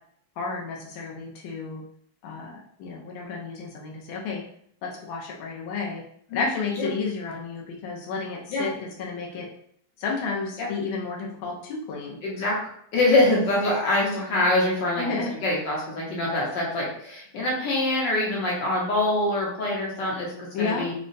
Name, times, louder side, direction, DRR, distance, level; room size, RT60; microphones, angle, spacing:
voice 1, 0.4-1.8 2.2-4.4 4.8-6.0 6.3-9.5 10.0-12.2 15.0-15.3 20.5-20.9, left 4 dB, 80° left, -1 dB, 1.4 m, -31 dB
voice 2, 12.2-12.6 12.9-15.0 15.4-20.9, left 1 dB, 65° left, -4 dB, 1.5 m, -24 dB
3.8 x 2.2 x 2.5 m, 0.66 s
omnidirectional pair, 2.2 m